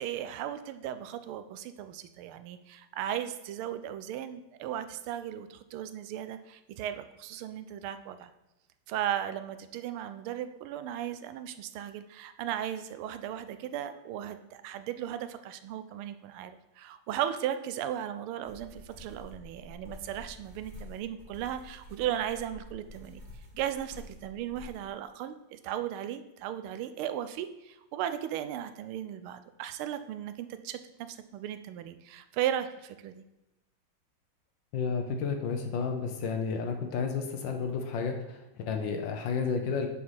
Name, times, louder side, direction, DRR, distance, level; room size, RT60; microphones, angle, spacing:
voice 1, 0.0-8.3 8.9-23.2 23.5-33.2, right 10 dB, 85° right, 11 dB, 1.5 m, -36 dB
sound 1, 18.5-24.8, left 1 dB, 35° right, 2.1 m, -49 dB
voice 2, 34.7-39.9, left 5 dB, 70° left, 5 dB, 1.4 m, -31 dB
6.4 x 4.6 x 5.5 m, 0.95 s
omnidirectional pair, 2.3 m